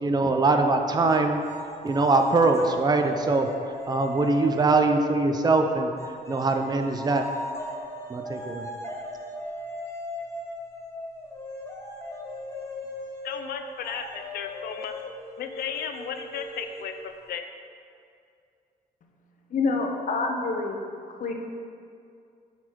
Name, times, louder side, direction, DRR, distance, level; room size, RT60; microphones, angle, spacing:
voice 1, 0.0-1.4 1.8-3.5 3.9-5.9 6.3-7.2 8.1-8.7, right 3 dB, 25° right, 5 dB, 0.6 m, -22 dB
sound 1, 1.1-5.0 6.0-17.3, left 1 dB, 15° left, 1.1 m, -38 dB
voice 2, 13.2-15.0 15.4-17.4, left 7 dB, 80° left, 6 dB, 0.5 m, -35 dB
voice 3, 19.5-20.8 21.2-21.3, left 3 dB, 55° left, 3 dB, 0.9 m, -27 dB
8.4 x 4.2 x 4.6 m, 2.4 s
cardioid pair, 90°, 16 cm